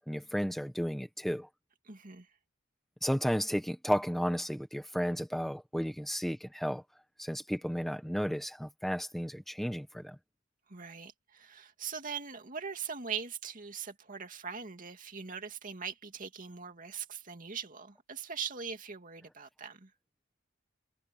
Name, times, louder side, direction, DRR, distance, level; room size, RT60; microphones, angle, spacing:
voice 1, 0.1-1.5 3.0-6.8 7.2-10.2, equal, ahead, 1.4 m, -33 dB
voice 2, 1.8-2.3 10.7-19.9, right 6 dB, 45° right, 2.4 m, -41 dB
head